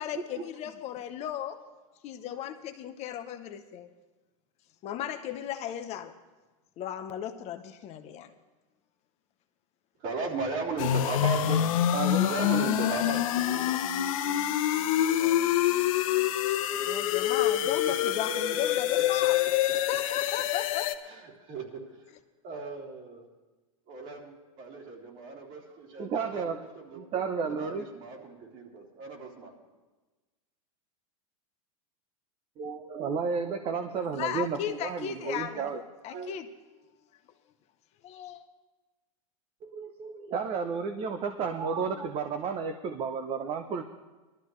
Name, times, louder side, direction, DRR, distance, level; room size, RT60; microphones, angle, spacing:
voice 1, 0.0-1.6 2.0-3.9 4.8-6.1 6.8-8.3 16.8-19.4 19.9-20.9 34.1-35.7 36.0-36.5 38.0-38.4, left 11 dB, 35° left, 7 dB, 0.8 m, -36 dB
voice 2, 10.0-11.7 12.3-13.8 15.0-15.4 17.6-17.9 21.0-22.1 22.4-23.3 23.9-27.0 27.4-29.6, right 4 dB, 50° right, -2 dB, 3.4 m, -37 dB
sound 1, 10.8-20.9, left 12 dB, 70° left, 0.8 m, -26 dB
voice 3, 11.9-12.7 26.0-26.6 27.0-27.9 32.6-35.8 36.1-36.4 39.6-43.8, right 5 dB, 30° right, 7 dB, 0.8 m, -32 dB
19.5 x 13.0 x 3.2 m, 1.2 s
supercardioid pair, 125°, 18 cm